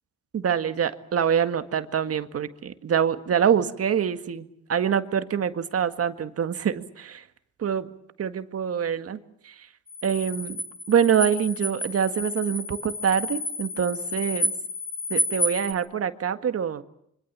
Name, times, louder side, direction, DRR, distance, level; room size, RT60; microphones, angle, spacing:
voice 1, 0.3-7.2 7.6-7.9 8.2-9.2 9.4-9.7 10.0-10.6 10.9-14.5 15.1-16.8, right 8 dB, 50° right, 9 dB, 1.8 m, -25 dB
sound 1, 9.9-15.7, left 1 dB, 25° right, 3.6 m, -30 dB
26.5 x 25.0 x 7.4 m, 0.74 s
cardioid pair, 90°, 30 cm